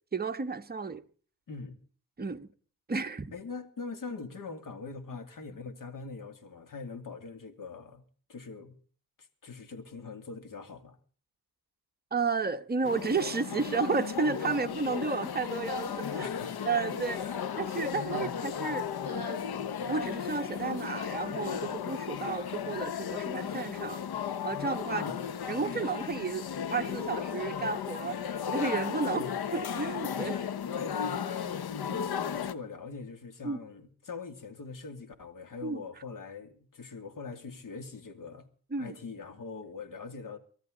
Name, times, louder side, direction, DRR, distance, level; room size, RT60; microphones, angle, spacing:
voice 1, 0.1-1.0 2.2-2.5 2.9-3.3 12.1-16.3 16.6-17.2 17.6-19.4 19.8-24.0 24.4-25.1 25.5-29.2 29.5-30.3 31.9-32.1 33.4-33.6 35.6-35.8 38.7-39.0, right 4 dB, 25° right, 1.2 m, -32 dB
voice 2, 3.3-8.0 8.3-8.8 9.4-11.0 16.1-16.7 17.1-17.4 18.1-18.3 24.9-25.2 29.0-29.3 30.2-38.5 38.8-40.4, left 4 dB, 55° left, 2.7 m, -42 dB
sound 1, 12.8-32.5, left 8 dB, 75° left, 1.2 m, -35 dB
24.0 x 13.0 x 3.9 m
cardioid pair, 105°, 38 cm